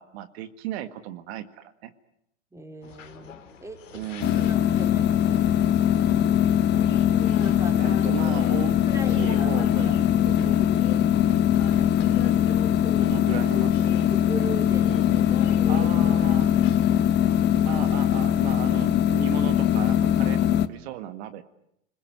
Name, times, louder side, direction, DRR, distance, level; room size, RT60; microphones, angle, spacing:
voice 1, 0.0-1.9 3.9-4.5 7.8-8.8 9.1-10.6 12.7-13.9 15.7-16.5 17.6-21.4, right 12 dB, 60° right, 10 dB, 1.8 m, -36 dB
voice 2, 2.5-4.0 4.4-6.1 7.4-8.0 8.9-9.5 9.8-9.9 13.9-15.2 15.6-15.7 16.9-17.5, right 2 dB, 10° right, 5 dB, 3.8 m, -40 dB
sound 1, 2.8-18.3, left 8 dB, 85° left, 3.4 m, -43 dB
sound 2, 4.2-20.7, left 10 dB, 30° left, 1.1 m, -21 dB
29.5 x 21.0 x 9.3 m, 0.79 s
hypercardioid pair, 120°, 37 cm